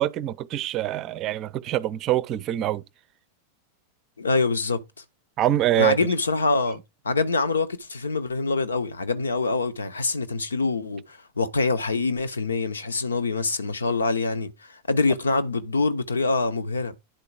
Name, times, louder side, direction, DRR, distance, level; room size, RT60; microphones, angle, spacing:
voice 1, 0.0-2.8 5.4-6.0, right 13 dB, 35° right, 0.6 m, -24 dB
voice 2, 4.2-4.8 5.8-6.8 7.0-16.9, left 3 dB, 75° left, 0.9 m, -25 dB
10.5 x 4.6 x 5.0 m
figure-of-eight pair, 90°, 0 cm